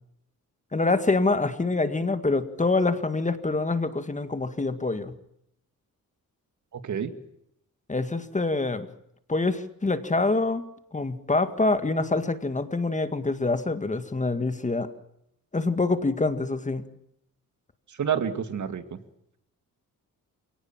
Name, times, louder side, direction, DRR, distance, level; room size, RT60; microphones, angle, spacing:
voice 1, 0.7-5.1 7.9-8.9 9.3-14.9 15.5-16.8, left 3 dB, 20° left, 10 dB, 1.9 m, -26 dB
voice 2, 6.7-7.1 17.9-19.0, right 8 dB, 60° right, 10 dB, 2.3 m, -29 dB
28.0 x 18.5 x 7.4 m, 0.78 s
cardioid pair, 105°, 34 cm